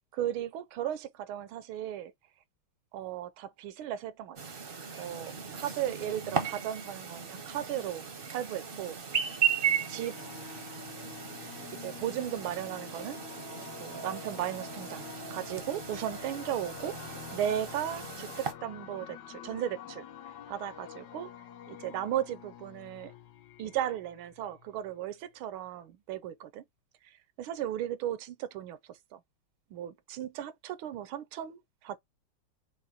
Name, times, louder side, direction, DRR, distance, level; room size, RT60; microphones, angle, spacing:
voice 1, 0.1-2.1 2.9-4.6 5.0-8.0 8.3-9.0 9.9-10.2 11.8-13.2 13.8-17.0 17.3-20.0 20.5-21.3 21.7-23.1 23.6-26.6 27.0-28.8 29.1-29.2 29.7-32.0, right 11 dB, 75° right, 1.4 m, -36 dB
Chirp tweet, 4.4-18.5, right 7 dB, 50° right, 0.6 m, -36 dB
sound 1, 9.6-25.0, left 10 dB, 70° left, 1.0 m, -48 dB
5.5 x 2.1 x 4.1 m
omnidirectional pair, 2.4 m